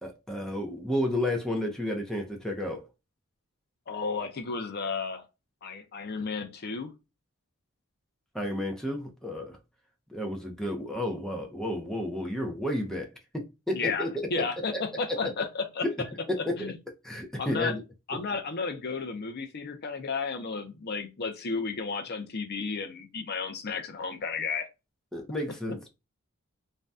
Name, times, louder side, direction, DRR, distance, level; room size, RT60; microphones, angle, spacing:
voice 1, 0.0-2.9 8.3-9.6 10.1-14.4 15.8-15.9 16.3-16.7 17.0-17.8 25.1-25.9, left 1 dB, ahead, 0.6 m, -32 dB
voice 2, 3.9-5.2 5.6-6.9 13.7-15.8 16.4-16.7 17.4-17.7 18.1-24.7, left 4 dB, 50° left, 0.5 m, -33 dB
2.6 x 2.2 x 3.3 m
head